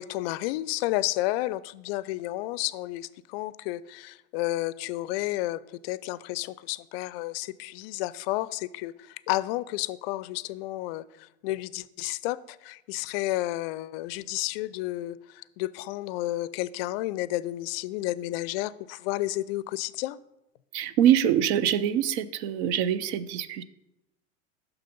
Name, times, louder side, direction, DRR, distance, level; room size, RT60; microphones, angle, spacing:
voice 1, 0.0-20.2, left 17 dB, 50° left, 0.4 m, -31 dB
voice 2, 20.7-23.6, right 10 dB, 55° right, 0.6 m, -24 dB
6.6 x 6.1 x 5.2 m
hypercardioid pair, 90°, 38 cm